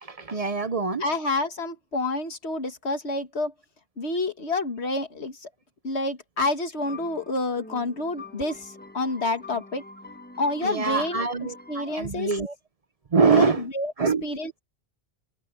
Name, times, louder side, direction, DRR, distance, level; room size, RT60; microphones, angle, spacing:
voice 1, 0.0-1.0 10.6-12.5 13.1-13.6 14.0-14.2, right 5 dB, 40° right, 0.7 m, -24 dB
voice 2, 1.0-3.5 4.0-5.5 5.8-9.8 10.4-11.3 11.7-12.3 13.2-14.6, left 2 dB, 85° left, 2.1 m, -28 dB
sound 1, 6.8-11.9, left 2 dB, 10° left, 1.2 m, -45 dB
omnidirectional pair, 1.1 m